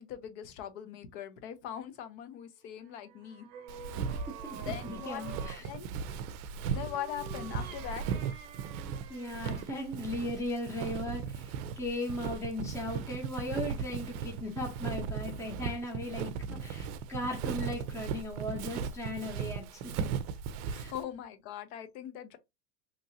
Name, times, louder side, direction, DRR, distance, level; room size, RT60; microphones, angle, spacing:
voice 1, 0.0-3.5 4.6-5.2 5.6-5.9 6.7-8.2 20.7-22.4, left 10 dB, 45° left, 0.7 m, -41 dB
sound 1, 2.7-5.7 6.6-9.8, right 6 dB, 30° right, 0.8 m, -48 dB
Walk footsteps, 3.7-21.0, right 6 dB, 65° right, 0.6 m, -37 dB
voice 2, 4.1-5.6 9.1-20.1 20.7-20.9, left 1 dB, 5° left, 0.8 m, -38 dB
3.0 x 2.7 x 2.7 m
supercardioid pair, 130°, 50 cm